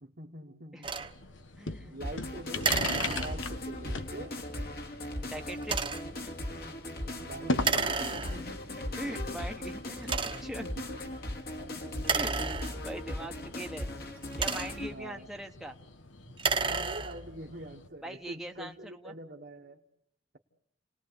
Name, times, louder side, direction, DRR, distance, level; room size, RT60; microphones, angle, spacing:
voice 1, 0.0-1.1 1.9-4.4 7.0-8.7 9.1-9.2 10.1-10.2 10.6-11.2 11.7-12.5 14.9-15.3 16.6-19.8, right 1 dB, 55° right, 0 dB, 1.5 m, -45 dB
sound 1, 0.8-1.1 2.6-3.7 5.6-6.2 7.6-8.6 9.3-9.4 10.0-10.6 12.0-13.1 14.1-15.0 16.3-17.4, right 4 dB, 25° right, 1.3 m, -32 dB
sound 2, 1.0-17.9, left 3 dB, 85° left, 1.4 m, -42 dB
voice 2, 1.6-2.0 5.3-5.9 6.2-6.3 9.0-10.7 12.1-12.3 12.8-13.9 14.4-15.8 18.0-19.1, right 1 dB, ahead, 3 dB, 1.2 m, -41 dB
sound 3, 2.0-14.9, left 1 dB, 50° left, 2.7 m, -38 dB
29.5 x 19.5 x 8.2 m, 0.75 s
head